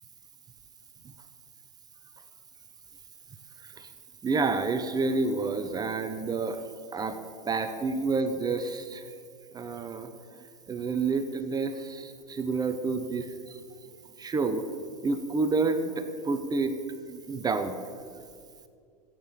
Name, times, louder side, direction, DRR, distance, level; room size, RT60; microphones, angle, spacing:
voice 1, 3.6-3.9 4.2-6.6 6.9-7.2 7.4-9.1 9.5-10.1 10.7-13.6 14.2-14.7 15.0-16.8 17.1-17.8, right 4 dB, 20° right, 9 dB, 1.0 m, -29 dB
14.0 x 9.3 x 6.8 m, 2.2 s
hypercardioid pair, 100°, 21 cm